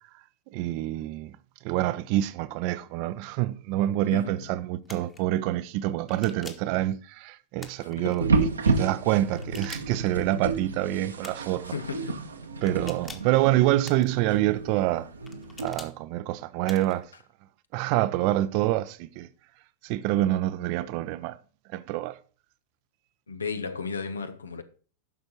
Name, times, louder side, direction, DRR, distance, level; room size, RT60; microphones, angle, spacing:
voice 1, 0.5-1.3 1.6-11.7 12.6-15.1 15.6-17.1 17.7-19.3 19.8-21.4 21.7-22.2, right 14 dB, 45° right, 0.8 m, -26 dB
voice 2, 4.1-4.5 7.8-8.3 11.6-12.4 23.3-24.6, left 5 dB, 75° left, 1.2 m, -35 dB
sound 1, 4.8-5.2 6.1-6.7 7.6-8.2 9.3-10.1 11.2-11.6 12.7-13.4 13.8-14.4 15.3-15.9 16.6-17.0, left 4 dB, 15° left, 1.5 m, -45 dB
sound 2, 8.2-15.7, right 3 dB, 75° right, 1.4 m, -30 dB
11.0 x 6.5 x 4.2 m
figure-of-eight pair, 90°, 0 cm